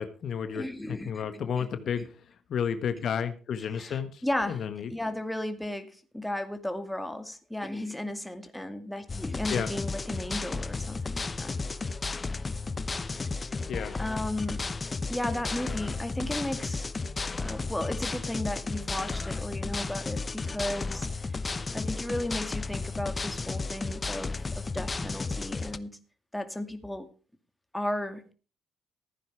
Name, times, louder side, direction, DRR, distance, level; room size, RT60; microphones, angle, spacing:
voice 1, 0.0-4.9 9.5-9.7 13.7-14.0, left 7 dB, 60° left, 10 dB, 1.4 m, -32 dB
voice 2, 0.5-1.7 3.8-11.6 13.5-13.6 14.0-14.7 15.1-16.9 17.4-21.4 21.7-26.0 26.3-27.1 27.7-28.3, left 1 dB, 5° left, 7 dB, 2.3 m, -35 dB
sound 1, 9.1-25.8, left 3 dB, 30° left, 0.9 m, -33 dB
15.0 x 9.7 x 4.8 m, 0.36 s
cardioid pair, 90°, 0 cm